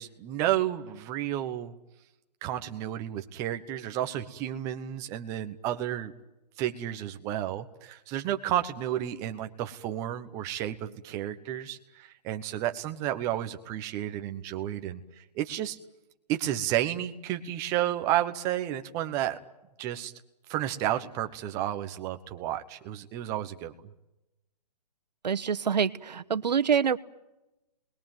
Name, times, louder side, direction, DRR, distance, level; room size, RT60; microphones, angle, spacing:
voice 1, 0.0-1.7 2.4-6.1 6.6-15.8 16.3-19.4 19.8-20.1 20.5-23.7, right 12 dB, 15° right, 7 dB, 1.0 m, -31 dB
voice 2, 25.2-27.0, right 7 dB, 80° right, 11 dB, 1.3 m, -26 dB
28.0 x 21.0 x 9.1 m, 0.95 s
hypercardioid pair, 170°, 21 cm